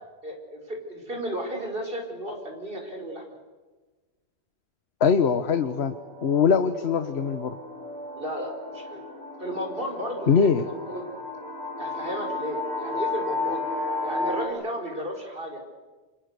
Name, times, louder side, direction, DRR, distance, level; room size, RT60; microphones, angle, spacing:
voice 1, 0.2-3.2 8.2-9.0 9.4-11.0 11.8-13.6 14.0-15.6, equal, 55° right, 3 dB, 5.8 m, -34 dB
voice 2, 5.0-5.9 6.2-7.6 10.3-10.6, left 6 dB, 75° left, 10 dB, 1.3 m, -22 dB
sound 1, 5.5-14.5, left 2 dB, 70° right, 4.8 m, -33 dB
29.0 x 27.5 x 6.8 m, 1.3 s
omnidirectional pair, 1.1 m